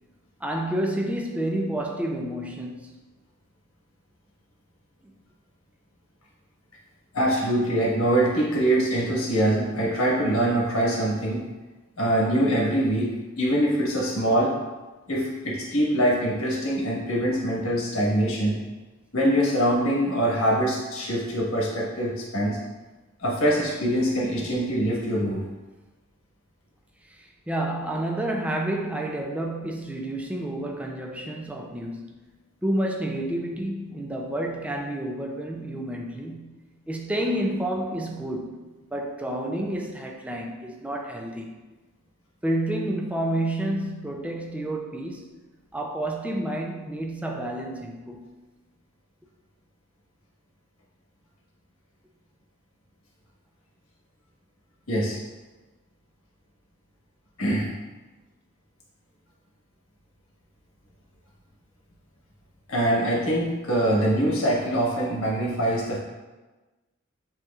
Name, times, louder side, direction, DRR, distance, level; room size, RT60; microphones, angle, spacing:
voice 1, 0.4-3.0 5.0-5.1 27.1-32.1 32.6-36.6 36.9-38.6 38.9-41.6 42.4-45.3 45.7-48.4, right 1 dB, 5° right, 1 dB, 0.4 m, -29 dB
voice 2, 7.1-11.4 12.0-13.1 13.4-14.5 15.1-18.6 19.1-22.6 23.2-25.4 54.9-55.2 57.4-57.7 62.7-66.0, right 1 dB, 90° left, -3 dB, 1.3 m, -23 dB
7.4 x 3.0 x 2.4 m, 1.2 s
head